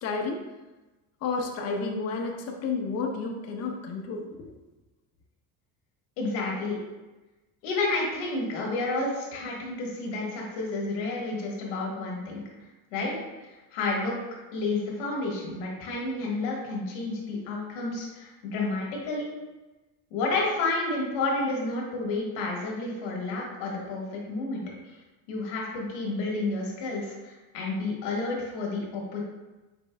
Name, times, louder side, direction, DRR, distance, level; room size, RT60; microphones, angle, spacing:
voice 1, 0.0-0.4 1.2-4.5, left 4 dB, 45° left, 2 dB, 0.6 m, -31 dB
voice 2, 6.2-6.8 7.6-12.4 12.9-13.1 13.7-14.1 14.5-19.3 20.1-24.6 25.3-29.2, left 3 dB, 85° left, -2 dB, 1.4 m, -30 dB
5.2 x 4.4 x 2.2 m, 1.1 s
cardioid pair, 110°, 37 cm